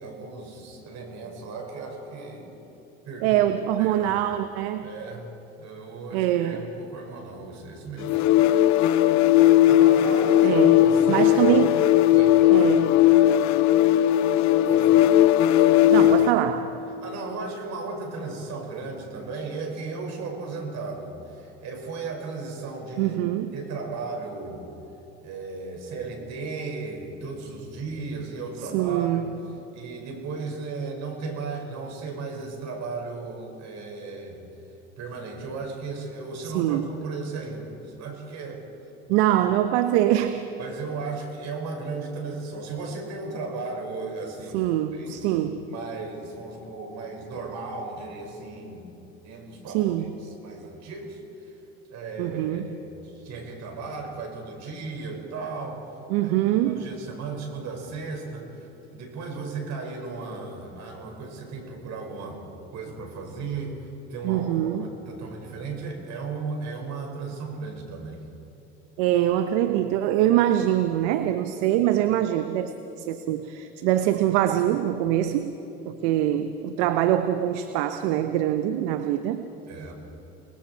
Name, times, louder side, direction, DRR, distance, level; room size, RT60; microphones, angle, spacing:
voice 1, 0.0-2.5 3.1-3.4 3.8-4.1 4.8-5.3 5.6-8.8 9.6-11.6 12.1-12.8 14.7-15.1 15.5-16.0 17.0-23.2 23.5-24.7 25.2-29.3 29.7-34.4 35.0-38.7 40.6-45.2 45.7-49.0 49.2-51.5 51.9-55.8 56.2-56.3 56.6-62.4 62.7-68.2 79.7-79.9, right 4 dB, 55° right, 2 dB, 5.7 m, -36 dB
voice 2, 3.2-4.9 6.1-6.7 10.4-10.8 11.1-11.8 12.5-12.9 15.9-16.8 23.0-23.5 28.6-29.4 36.4-36.9 39.1-40.5 44.5-45.7 49.7-50.1 52.2-52.7 56.1-56.9 64.2-64.9 69.0-75.6 75.9-79.5, right 12 dB, 70° right, 9 dB, 1.0 m, -24 dB
sound 1, 8.0-16.4, left 13 dB, 55° left, 0.9 m, -18 dB
29.5 x 20.5 x 4.6 m, 2.9 s
hypercardioid pair, 75°, 33 cm